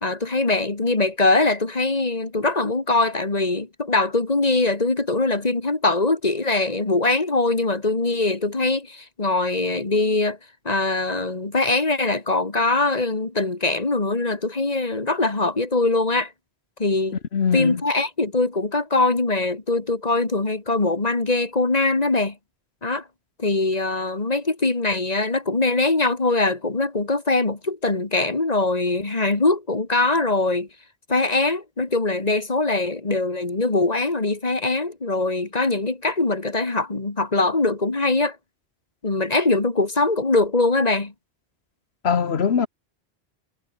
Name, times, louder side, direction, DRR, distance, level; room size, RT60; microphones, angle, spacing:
voice 1, 0.0-10.4 10.7-16.3 16.8-17.2 17.5-22.4 22.8-23.0 23.4-30.7 31.1-38.4 39.0-41.1, left 2 dB, 40° left, 2.1 m, -22 dB
voice 2, 17.3-17.8 42.0-42.7, left 6 dB, 75° left, 1.5 m, -21 dB
omnidirectional pair, 1.1 m